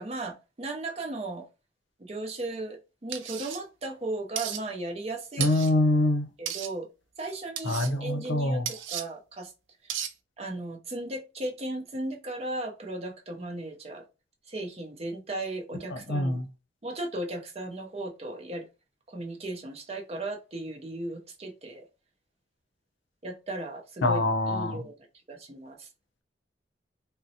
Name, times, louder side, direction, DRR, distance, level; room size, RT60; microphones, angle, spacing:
voice 1, 0.0-1.4 2.0-5.5 6.4-6.9 7.2-9.5 10.4-14.0 14.5-16.4 16.8-18.6 19.1-21.9 23.2-24.9 25.3-25.9, right 2 dB, 35° right, 0.6 m, -36 dB
sound 1, 3.1-3.6 4.4-4.6 5.4-5.7 6.5-6.7 7.6-7.9 8.7-9.0 9.9-10.1, right 10 dB, 80° right, 0.4 m, -34 dB
voice 2, 5.4-6.3 7.6-8.7 15.9-16.5 24.0-24.8, left 1 dB, 75° left, 0.7 m, -25 dB
3.8 x 2.0 x 2.7 m
head